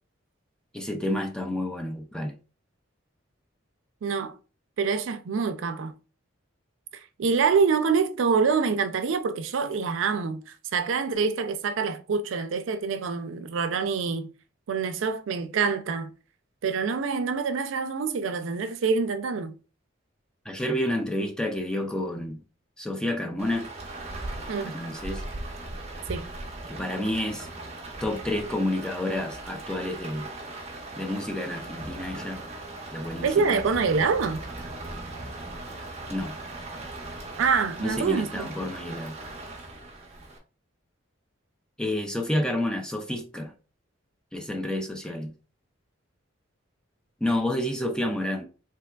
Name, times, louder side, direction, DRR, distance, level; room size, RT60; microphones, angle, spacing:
voice 1, 0.7-2.4 20.5-22.4 22.8-23.7 24.6-25.2 26.7-27.5 28.0-30.3 31.0-32.4 32.9-33.6 36.1-36.4 37.8-39.2 41.8-43.5 44.3-45.3 47.2-48.4, left 1 dB, 5° left, 0.3 m, -29 dB
voice 2, 4.0-4.3 4.8-5.9 7.2-10.4 10.7-14.3 14.7-16.1 16.6-19.5 24.5-24.7 26.1-26.3 33.2-34.4 37.4-38.5, right 5 dB, 70° right, 0.4 m, -26 dB
Rain, 23.4-40.4, right 2 dB, 30° right, 0.7 m, -39 dB
3.5 x 2.8 x 2.2 m
head